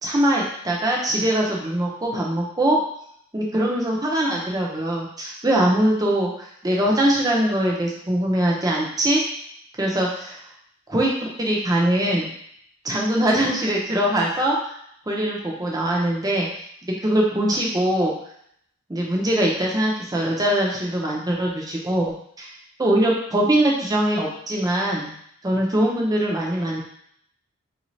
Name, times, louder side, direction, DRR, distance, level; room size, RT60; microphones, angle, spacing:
voice 1, 0.0-2.8 3.3-9.2 9.8-10.4 10.9-12.3 12.8-14.6 15.1-16.5 16.8-18.1 18.9-22.5 22.8-25.2 25.4-26.8, right 1 dB, 15° right, -2 dB, 0.6 m, -22 dB
3.6 x 2.6 x 3.1 m, 0.67 s
head